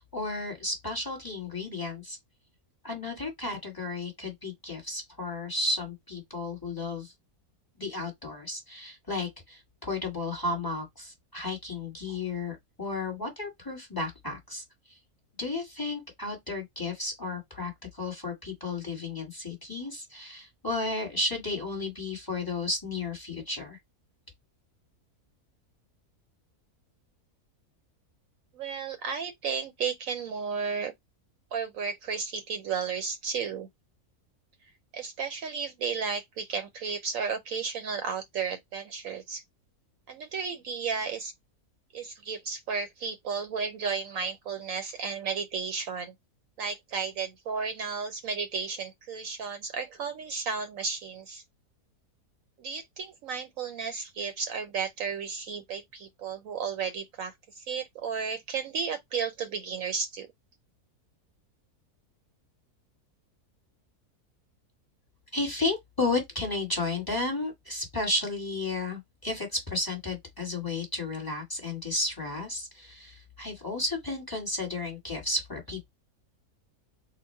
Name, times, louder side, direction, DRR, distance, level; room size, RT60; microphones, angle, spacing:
voice 1, 0.0-2.2 2.8-7.1 7.8-14.6 14.9-15.0 15.4-23.8 65.3-75.9, left 2 dB, 15° left, 1.4 m, -33 dB
voice 2, 28.5-30.9 31.5-33.7 34.9-39.4 40.1-41.3 41.9-46.1 46.6-51.4 52.6-60.3, right 5 dB, 70° right, 0.9 m, -33 dB
3.9 x 2.3 x 4.3 m
omnidirectional pair, 1.6 m